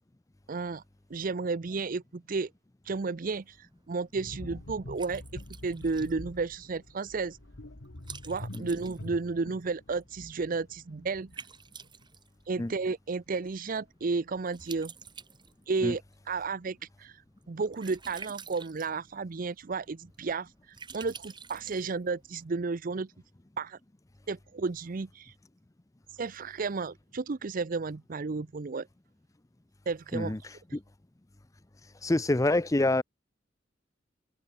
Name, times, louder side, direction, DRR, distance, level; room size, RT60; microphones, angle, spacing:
voice 1, 0.5-0.8 1.1-2.5 2.8-5.2 5.6-7.4 8.2-11.4 12.5-14.9 15.7-16.0 16.3-17.2 17.5-23.1 23.6-23.8 24.3-25.3 26.1-28.9 29.9-30.3, right 4 dB, 45° right, 0.6 m, -33 dB
Liquid, 3.0-22.5, right 6 dB, 25° right, 2.6 m, -51 dB
sound 1, 4.1-11.6 11.8-12.0, left 1 dB, 70° left, 1.7 m, -46 dB
voice 2, 30.1-30.8 32.0-33.0, left 2 dB, 15° left, 0.6 m, -27 dB
open air
head